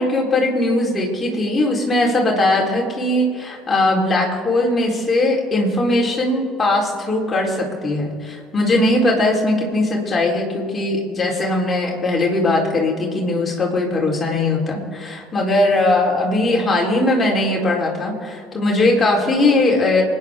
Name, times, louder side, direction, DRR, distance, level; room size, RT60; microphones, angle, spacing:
voice 1, 0.0-20.0, left 2 dB, 25° left, -2 dB, 4.2 m, -19 dB
27.5 x 10.0 x 3.8 m, 2.3 s
figure-of-eight pair, 60°, 0 cm